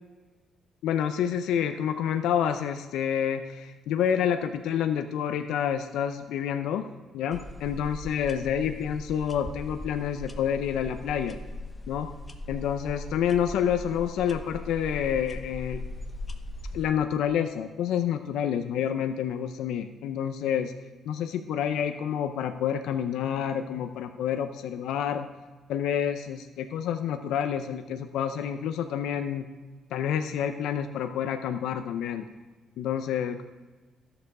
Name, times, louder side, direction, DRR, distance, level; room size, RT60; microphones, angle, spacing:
voice 1, 0.8-6.8 7.1-11.4 11.9-12.1 12.5-15.8 16.7-20.7 21.1-25.3 25.7-29.5 29.9-32.3 32.8-33.4, left 9 dB, 85° left, 7 dB, 0.5 m, -28 dB
sound 1, 7.3-16.9, left 1 dB, 20° left, 1.0 m, -39 dB
13.0 x 6.9 x 4.8 m, 1.3 s
cardioid pair, 90°, 0 cm